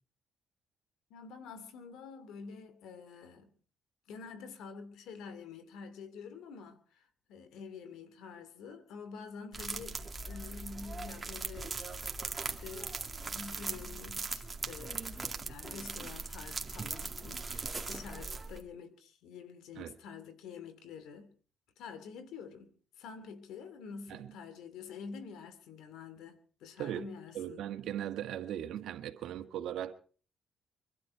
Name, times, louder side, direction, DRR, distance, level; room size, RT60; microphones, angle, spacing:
voice 1, 1.1-3.5 4.1-11.8 12.4-13.0 13.2-21.3 21.8-27.7, left 5 dB, 85° left, 2.5 m, -48 dB
sound 1, 9.5-18.6, right 3 dB, 25° right, 2.2 m, -40 dB
voice 2, 27.3-29.9, right 11 dB, 80° right, 1.6 m, -38 dB
24.0 x 12.0 x 4.7 m
cardioid pair, 90°, 0 cm